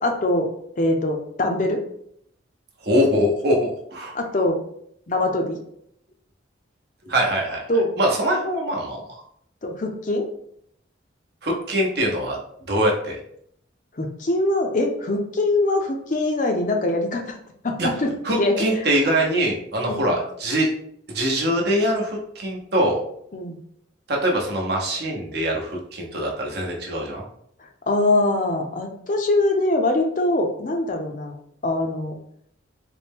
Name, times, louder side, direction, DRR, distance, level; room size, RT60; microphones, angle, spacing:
voice 1, 0.0-0.5 0.8-1.8 4.1-4.6 5.1-5.6 7.7-7.9 9.6-10.3 14.0-17.4 17.6-18.1 18.4-18.5 19.9-20.1 23.3-23.6 27.9-31.3 31.6-32.1, left 2 dB, 40° left, 3 dB, 0.5 m, -23 dB
voice 2, 2.8-4.1 7.1-7.6 8.0-9.2 11.4-12.4 12.7-13.2 17.8-17.9 18.2-20.7 21.1-23.0 24.1-27.2, equal, 55° right, -1 dB, 0.9 m, -23 dB
4.2 x 2.1 x 3.4 m, 0.69 s
head